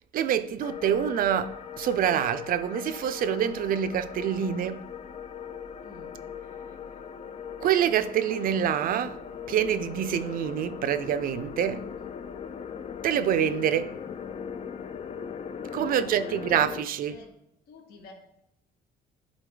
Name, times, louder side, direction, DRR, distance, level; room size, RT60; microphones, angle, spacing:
voice 1, 0.1-4.8 7.6-9.2 9.5-11.8 13.0-14.0 15.7-17.2, right 9 dB, 55° right, 0.6 m, -26 dB
sound 1, 0.6-16.8, left 7 dB, 40° left, 0.6 m, -39 dB
voice 2, 5.8-6.2 15.8-16.4 17.1-17.3 17.7-18.1, left 4 dB, 65° left, 1.6 m, -50 dB
11.5 x 4.1 x 3.9 m
cardioid pair, 110°, 17 cm